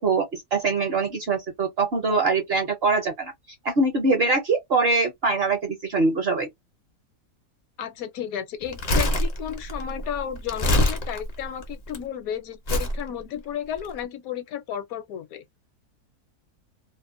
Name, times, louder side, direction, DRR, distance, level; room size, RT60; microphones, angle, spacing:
voice 1, 0.0-3.3 3.6-6.5, right 3 dB, 55° right, 0.7 m, -23 dB
voice 2, 7.8-15.4, left 9 dB, 75° left, 1.0 m, -33 dB
Crumpling crinkling, 8.6-12.0 12.7-13.0 13.7-13.9, left 1 dB, 55° left, 0.4 m, -24 dB
2.6 x 2.1 x 2.4 m
omnidirectional pair, 1.6 m